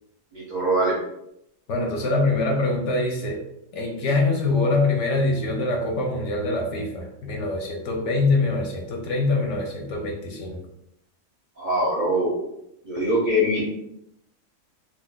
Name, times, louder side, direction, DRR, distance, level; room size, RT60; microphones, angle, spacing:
voice 1, 0.3-0.9 11.6-12.4 12.9-13.6, equal, 50° right, -5 dB, 0.6 m, -22 dB
voice 2, 1.7-3.4 3.7-10.6, left 2 dB, 65° left, 1 dB, 0.9 m, -24 dB
2.4 x 2.3 x 3.5 m, 0.80 s
omnidirectional pair, 1.4 m